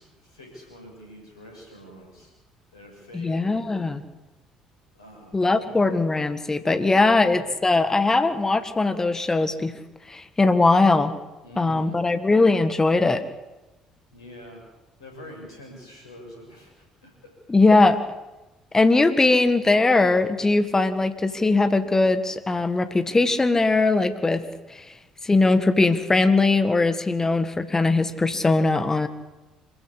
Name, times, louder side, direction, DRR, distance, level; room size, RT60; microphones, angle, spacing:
voice 1, 0.0-2.3 2.7-3.6 4.9-5.9 7.0-7.4 11.4-12.1 14.1-14.6 15.0-17.1, equal, 80° left, 0 dB, 6.8 m, -45 dB
voice 2, 3.1-4.0 5.3-9.7 10.1-11.1 11.6-13.2 17.5-18.0 18.7-24.4 24.7-24.8 25.2-29.1, left 3 dB, 20° left, 11 dB, 1.7 m, -20 dB
26.5 x 15.0 x 8.4 m, 1.0 s
figure-of-eight pair, 50°, 3 cm